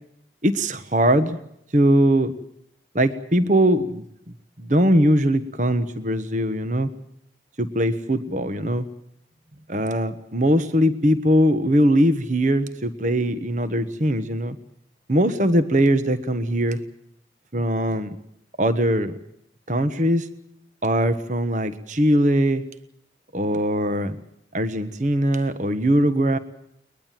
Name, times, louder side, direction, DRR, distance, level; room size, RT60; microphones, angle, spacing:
voice 1, 0.4-1.4 1.7-2.3 2.9-4.0 4.6-6.9 7.6-8.9 9.7-14.6 15.1-16.8 17.5-18.2 18.6-19.2 19.7-20.3 20.8-22.6 23.3-24.2 24.5-26.4, equal, 45° right, 11 dB, 1.3 m, -21 dB
22.0 x 21.0 x 7.6 m, 0.75 s
head